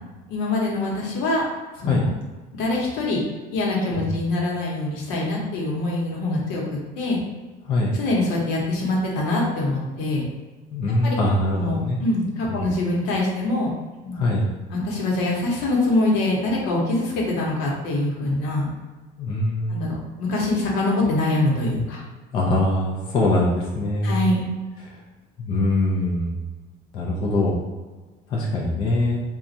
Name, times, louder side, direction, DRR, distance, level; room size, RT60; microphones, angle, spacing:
voice 1, 0.3-1.4 1.8-2.1 2.5-3.2 3.5-7.2 7.9-10.3 11.0-11.2 11.5-13.7 14.0-14.2 14.7-18.7 19.7-22.0 24.0-24.5, left 2 dB, 80° left, -2 dB, 0.9 m, -24 dB
voice 2, 10.7-12.0 12.5-12.7 14.1-14.4 19.2-19.8 22.3-24.2 24.8-25.0 25.4-26.3 26.9-27.5 28.3-29.2, left 2 dB, 30° left, -3 dB, 0.4 m, -23 dB
2.5 x 2.3 x 4.0 m, 1.3 s
cardioid pair, 175°, 17 cm